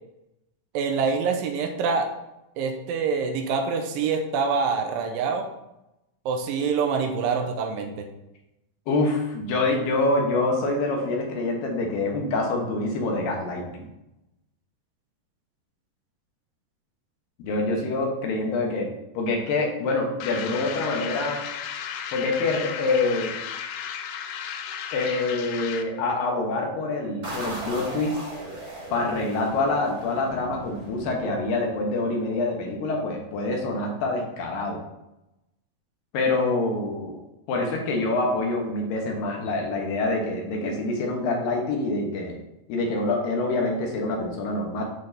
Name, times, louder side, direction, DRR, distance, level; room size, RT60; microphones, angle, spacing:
voice 1, 0.7-2.1 2.6-5.5 6.3-8.1, right 5 dB, 85° right, 5 dB, 2.0 m, -25 dB
voice 2, 8.9-13.9 17.4-18.9 19.1-21.4 22.1-23.3 24.9-28.2 28.9-34.8 36.1-37.2 37.5-42.4 42.7-44.8, left 2 dB, 70° left, 0 dB, 2.6 m, -26 dB
sound 1, 20.2-26.0, left 8 dB, 85° left, 2.0 m, -34 dB
sound 2, 27.2-31.7, right 1 dB, 35° right, 1.7 m, -38 dB
10.5 x 4.2 x 3.3 m, 0.89 s
omnidirectional pair, 4.7 m